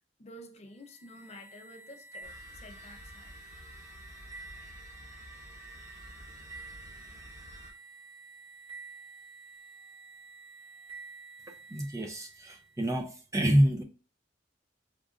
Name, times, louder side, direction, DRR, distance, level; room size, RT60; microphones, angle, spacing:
voice 1, 0.2-3.4, left 1 dB, 35° left, 0.5 m, -50 dB
sound 1, 0.7-12.8, right 3 dB, 35° right, 1.3 m, -50 dB
sound 2, 2.2-7.7, equal, 60° right, 2.1 m, -50 dB
voice 2, 11.7-13.8, equal, 15° right, 0.4 m, -27 dB
5.0 x 2.5 x 2.4 m
head